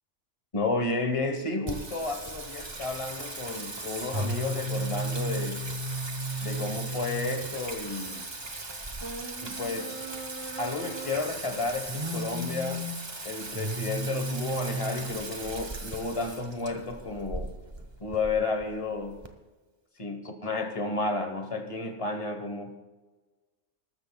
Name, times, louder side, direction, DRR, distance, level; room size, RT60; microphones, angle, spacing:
voice 1, 0.5-5.7 6.4-8.3 9.4-10.0 10.6-12.8 13.2-17.5 18.0-19.2 20.0-22.8, left 3 dB, 25° left, 6 dB, 1.1 m, -32 dB
Singing, 1.7-19.3, right 2 dB, 20° right, 0.8 m, -35 dB
20.0 x 13.0 x 2.3 m, 1.3 s
omnidirectional pair, 1.5 m